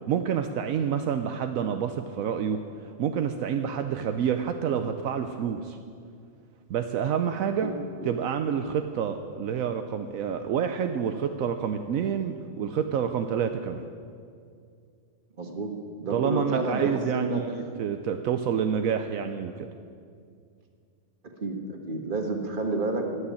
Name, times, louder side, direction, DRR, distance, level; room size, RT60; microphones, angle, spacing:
voice 1, 0.1-2.6 3.0-5.8 6.7-7.7 8.0-13.8 16.1-19.7, right 7 dB, 75° right, 7 dB, 1.0 m, -28 dB
voice 2, 15.3-15.7 16.0-17.4 21.4-23.2, right 2 dB, 35° right, 3 dB, 1.6 m, -30 dB
16.5 x 6.6 x 9.9 m, 2.3 s
omnidirectional pair, 1.5 m